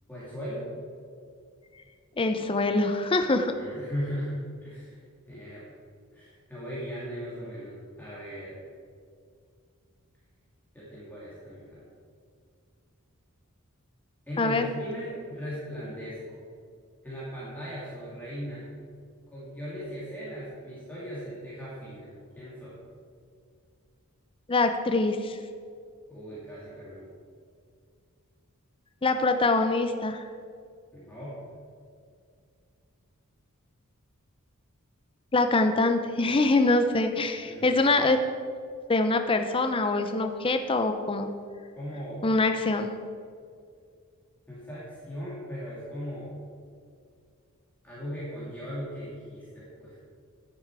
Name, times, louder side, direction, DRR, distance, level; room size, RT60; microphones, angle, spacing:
voice 1, 0.1-0.7 3.4-5.7 6.1-8.6 10.7-11.8 14.3-16.4 17.0-18.6 19.3-22.8 26.1-27.1 30.9-31.4 37.4-38.0 41.7-42.4 44.5-46.4 47.8-50.0, equal, 10° left, -9 dB, 2.6 m, -38 dB
voice 2, 2.2-3.5 14.4-14.7 24.5-25.4 29.0-30.2 35.3-38.2 38.9-41.3 42.2-42.9, left 2 dB, 25° left, 7 dB, 0.5 m, -24 dB
10.5 x 9.5 x 4.7 m, 2.2 s
head